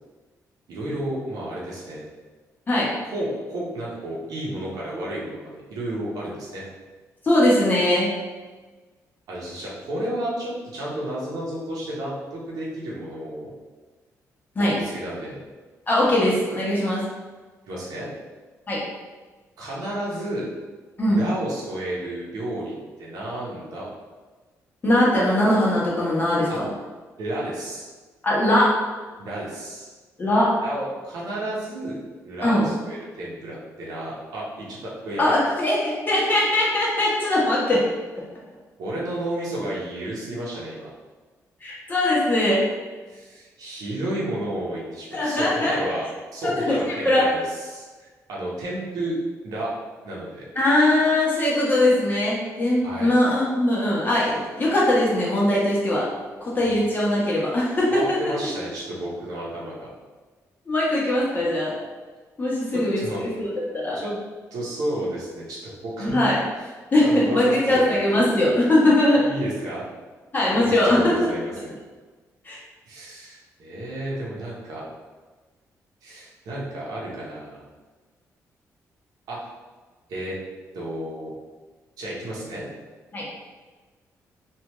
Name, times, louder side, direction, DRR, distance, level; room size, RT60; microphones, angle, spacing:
voice 1, 0.7-2.0 3.1-6.7 9.3-13.5 14.6-15.4 16.1-16.2 17.7-18.1 19.6-20.4 21.1-23.9 26.5-26.6 27.2-27.9 29.2-29.9 30.6-32.0 32.2-35.3 38.8-40.9 43.1-46.1 46.3-49.1 49.4-49.7 50.0-50.4 52.8-53.1 56.6-56.7 57.9-59.9 61.4-61.5 62.7-63.3 63.9-64.1 64.5-66.3 67.0-68.3 69.2-69.8 70.5-71.7 72.9-74.8 76.0-77.6 79.3-79.4 80.1-80.4 80.7-81.3 82.0-82.7, right 1 dB, 85° right, -5 dB, 1.0 m, -32 dB
voice 2, 7.2-8.1 14.5-14.7 15.9-17.0 18.7-18.8 21.0-21.2 24.8-26.7 28.2-28.8 30.2-30.5 32.4-32.7 35.2-37.9 41.6-42.6 45.1-45.7 46.4-46.8 47.0-47.2 50.5-56.0 56.4-58.2 60.7-61.7 62.4-64.0 66.0-66.4 66.9-67.0 67.3-69.2 70.3-71.3 72.4-72.6 83.1-83.2, left 1 dB, 30° left, -6 dB, 1.1 m, -21 dB
3.3 x 2.6 x 3.0 m, 1.3 s
cardioid pair, 115°, 6 cm